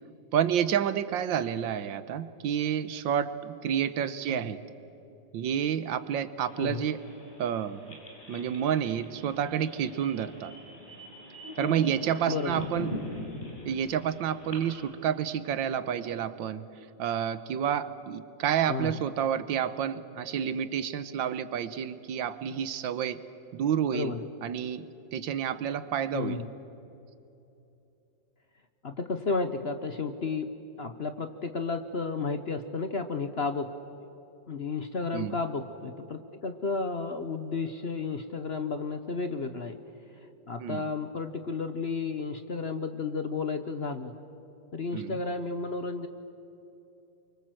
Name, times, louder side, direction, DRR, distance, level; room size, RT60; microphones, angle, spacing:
voice 1, 0.3-4.6 5.3-7.0 7.4-8.0 8.3-10.5 11.6-12.9 13.6-16.7 17.0-23.2 23.5-24.1 24.4-26.4 35.1-35.4 40.6-40.9 44.9-45.2, right 9 dB, 85° right, 13 dB, 1.6 m, -29 dB
sound 1, 6.5-14.7, left 1 dB, 25° left, 5.2 m, -42 dB
voice 2, 12.3-12.7 18.7-19.0 23.9-24.3 26.1-26.5 28.8-30.5 30.8-33.7 34.5-39.8 40.5-44.1 44.7-46.1, left 4 dB, 45° left, 8 dB, 0.9 m, -32 dB
29.0 x 24.0 x 7.7 m, 2.9 s
omnidirectional pair, 2.0 m